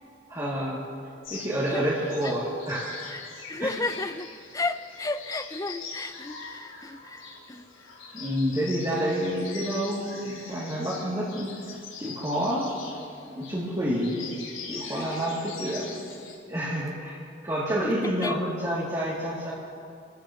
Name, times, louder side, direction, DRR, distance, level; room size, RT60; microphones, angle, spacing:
voice 1, 0.3-0.8 1.3-2.9 3.6-3.7 8.1-12.7 13.2-14.2 14.7-16.0 16.5-17.2 17.4-19.5, equal, 20° right, -9 dB, 2.8 m, -29 dB
sound 1, 1.2-16.4, left 4 dB, 85° left, 5.2 m, -43 dB
voice 2, 3.5-4.3 4.5-7.7 17.8-18.4, left 3 dB, 15° left, 10 dB, 0.5 m, -33 dB
29.5 x 14.0 x 3.2 m, 2.4 s
head